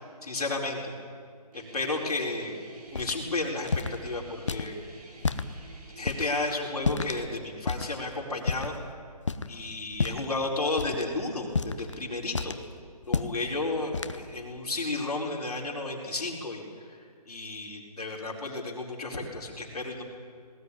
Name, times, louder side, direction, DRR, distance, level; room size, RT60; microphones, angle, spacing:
voice 1, 0.2-0.9 1.5-4.8 6.0-8.7 9.5-12.5 13.1-20.0, left 2 dB, 70° left, -1 dB, 4.6 m, -33 dB
Guitar, 1.5-6.4, right 2 dB, 70° right, 4.4 m, -50 dB
sound 1, 2.9-3.2 3.6-4.0 4.5-4.7 5.2-5.5 6.1-6.3 6.8-7.2 7.7-7.9 8.5-8.8 9.2-9.5 9.9-10.3 10.8-11.0 11.5-11.9 12.3-12.7 13.0-13.4 13.9-14.2, left 4 dB, 50° left, 0.9 m, -30 dB
19.0 x 18.5 x 9.8 m, 2.2 s
hypercardioid pair, 180°, 20 cm